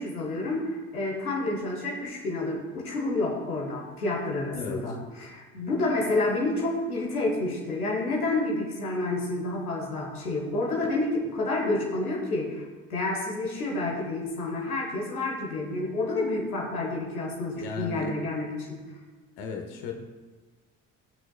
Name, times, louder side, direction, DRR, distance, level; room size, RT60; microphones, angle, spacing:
voice 1, 0.0-12.6 12.9-18.8, left 2 dB, 90° left, -2 dB, 1.3 m, -29 dB
voice 2, 4.5-4.9 17.6-18.1 19.4-19.9, left 5 dB, 60° left, 3 dB, 1.3 m, -36 dB
17.5 x 6.2 x 2.3 m, 1.4 s
figure-of-eight pair, 55°, 43 cm